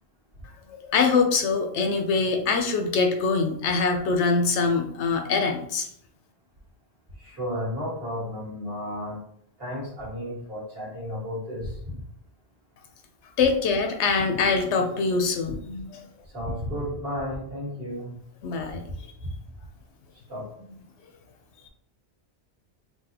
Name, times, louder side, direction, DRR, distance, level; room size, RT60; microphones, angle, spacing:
voice 1, 0.7-5.9 13.4-16.1 18.4-19.1, left 4 dB, 85° left, 5 dB, 0.9 m, -24 dB
voice 2, 7.2-9.2 9.6-11.9 16.3-18.1 19.2-19.3 20.3-20.5, equal, 55° right, -6 dB, 1.8 m, -33 dB
3.9 x 2.8 x 2.8 m, 0.68 s
omnidirectional pair, 1.2 m